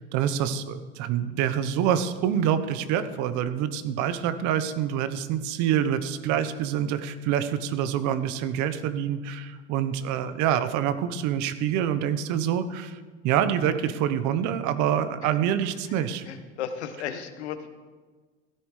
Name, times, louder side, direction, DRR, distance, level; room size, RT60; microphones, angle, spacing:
voice 1, 0.1-13.0 13.2-16.2, right 9 dB, 60° right, 11 dB, 1.1 m, -26 dB
voice 2, 16.3-17.7, left 8 dB, 80° left, 9 dB, 1.2 m, -34 dB
16.0 x 13.5 x 3.3 m, 1.4 s
hypercardioid pair, 70°, 33 cm